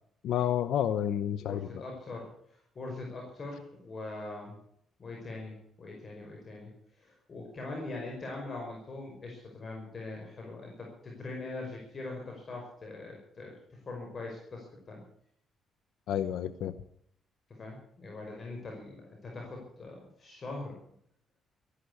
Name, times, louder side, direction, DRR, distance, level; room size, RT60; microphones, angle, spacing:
voice 1, 0.2-1.6 16.1-16.7, left 10 dB, 80° left, 13 dB, 0.7 m, -29 dB
voice 2, 1.4-2.3 2.8-4.6 5.0-6.7 7.0-15.0 17.6-20.8, left 2 dB, 40° left, 0 dB, 5.3 m, -42 dB
14.0 x 11.5 x 8.3 m, 0.68 s
cardioid pair, 90°, 0 cm